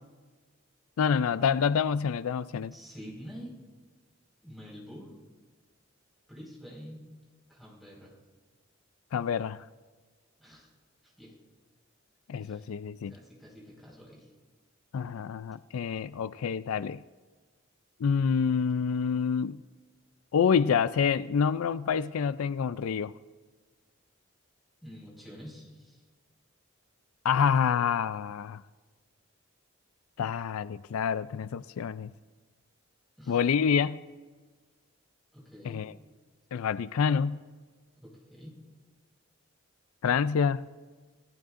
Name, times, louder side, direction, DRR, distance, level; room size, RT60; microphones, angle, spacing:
voice 1, 1.0-2.7 9.1-9.6 12.3-13.1 14.9-17.0 18.0-19.6 20.3-23.1 27.2-28.6 30.2-32.1 33.3-34.0 35.6-35.9 36.5-37.4 40.0-40.6, left 6 dB, 85° left, 0.4 m, -27 dB
voice 2, 2.7-3.6 4.4-5.1 6.3-7.0 7.5-8.1 10.4-10.7 11.0-11.4 12.3-12.7 13.0-14.3 24.8-26.0 33.2-33.4 35.3-35.8 38.0-38.6, equal, ahead, 4.9 m, -47 dB
28.5 x 16.5 x 2.5 m
head